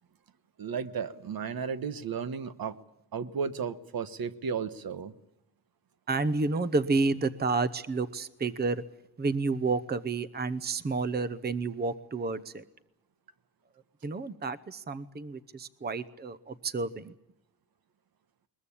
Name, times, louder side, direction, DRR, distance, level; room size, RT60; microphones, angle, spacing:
voice 1, 0.6-2.8 3.1-5.1, right 6 dB, 65° right, 12 dB, 1.2 m, -34 dB
voice 2, 6.1-8.8 9.2-12.6 14.0-17.1, right 3 dB, 25° right, 15 dB, 0.8 m, -30 dB
21.5 x 21.5 x 8.5 m, 0.83 s
wide cardioid pair, 125°, 39 cm